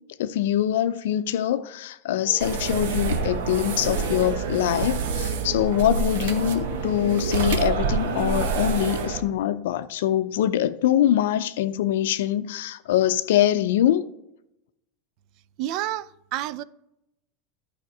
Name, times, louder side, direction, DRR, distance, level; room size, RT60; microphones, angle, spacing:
voice 1, 0.2-14.0, left 11 dB, 75° left, 0.5 m, -23 dB
sound 1, 2.2-8.9, right 1 dB, 35° right, 1.4 m, -43 dB
sound 2, 2.4-9.2, right 5 dB, 75° right, 0.9 m, -27 dB
voice 2, 15.6-16.6, right 13 dB, 55° right, 0.4 m, -29 dB
10.5 x 5.0 x 4.6 m
hypercardioid pair, 95°, 0 cm